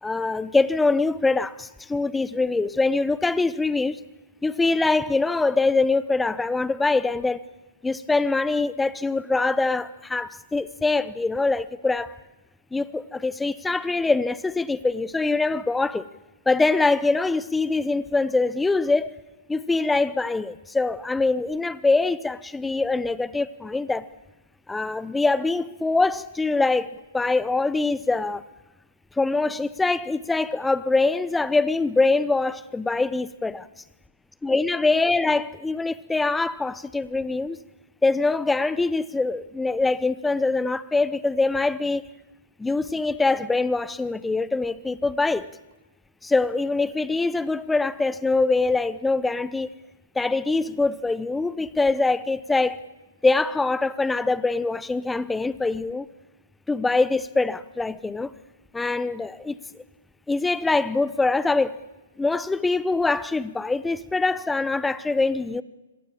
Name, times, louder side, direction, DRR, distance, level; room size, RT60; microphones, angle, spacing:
voice 1, 0.0-4.0 4.4-7.4 7.8-12.2 12.7-16.1 16.5-19.2 19.5-24.1 24.7-26.9 27.1-28.4 29.2-33.7 34.4-37.6 38.0-42.0 42.6-45.5 46.2-49.7 50.1-52.8 53.2-56.1 56.7-58.3 58.7-59.6 60.3-61.8 62.2-65.6, left 3 dB, 5° left, 0.8 m, -23 dB
25.0 x 17.5 x 8.7 m
hypercardioid pair, 125°, 0 cm